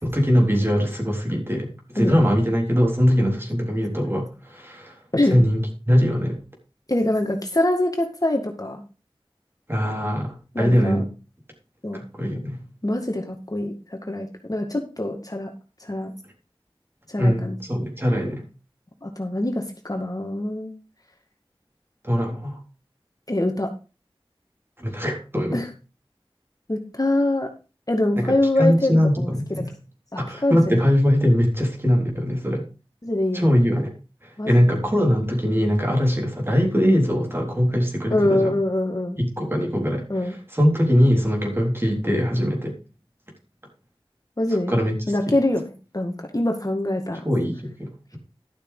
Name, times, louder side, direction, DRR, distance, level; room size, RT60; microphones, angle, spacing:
voice 1, 0.0-5.0 5.3-6.4 9.7-11.1 11.9-12.6 17.2-17.4 17.7-18.4 22.0-22.6 24.8-25.6 28.2-29.7 30.2-32.6 33.3-33.9 34.2-38.6 39.2-42.8 44.7-45.0 47.3-48.2, equal, 25° right, 2 dB, 3.8 m, -21 dB
voice 2, 6.9-8.8 10.5-11.0 11.8-12.0 12.8-15.5 15.8-16.1 17.1-17.6 19.0-20.7 23.3-23.7 25.5-25.7 26.7-27.5 27.9-29.6 30.1-30.8 33.0-33.6 34.4-34.8 38.1-39.2 40.1-40.3 44.4-44.8 45.1-47.2, left 1 dB, 40° left, 3 dB, 2.1 m, -24 dB
12.5 x 6.7 x 5.0 m, 0.31 s
wide cardioid pair, 40°, 10 cm